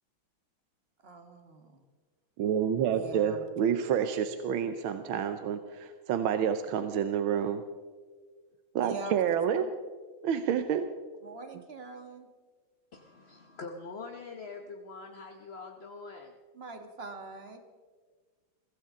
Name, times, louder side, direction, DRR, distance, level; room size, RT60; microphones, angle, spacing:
voice 1, 1.0-1.8 2.9-3.4 8.8-9.7 11.2-12.3 16.5-17.6, right 3 dB, 30° right, 6 dB, 1.7 m, -43 dB
voice 2, 2.4-7.6 8.7-9.7 10.2-10.9, right 8 dB, 85° right, 9 dB, 1.6 m, -28 dB
voice 3, 12.9-16.3, left 4 dB, 45° left, 3 dB, 0.9 m, -44 dB
22.5 x 16.5 x 3.7 m, 1.5 s
omnidirectional pair, 2.2 m